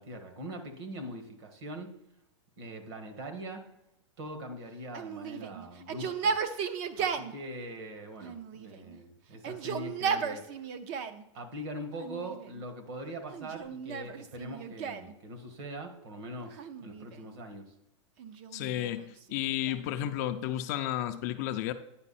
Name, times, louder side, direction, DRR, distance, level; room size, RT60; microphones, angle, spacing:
voice 1, 0.0-1.9 2.6-3.7 4.2-6.4 6.7-10.7 11.3-17.7, right 1 dB, 55° right, 5 dB, 1.7 m, -42 dB
Yell, 4.9-7.3 8.2-9.0 9.3-11.2 12.0-12.6 13.3-15.1 16.5-17.4 18.2-19.9, right 6 dB, 30° right, 0.5 m, -35 dB
voice 2, 18.5-21.7, left 12 dB, 35° left, 8 dB, 0.4 m, -32 dB
9.6 x 5.3 x 4.2 m, 0.87 s
supercardioid pair, 165°, 16 cm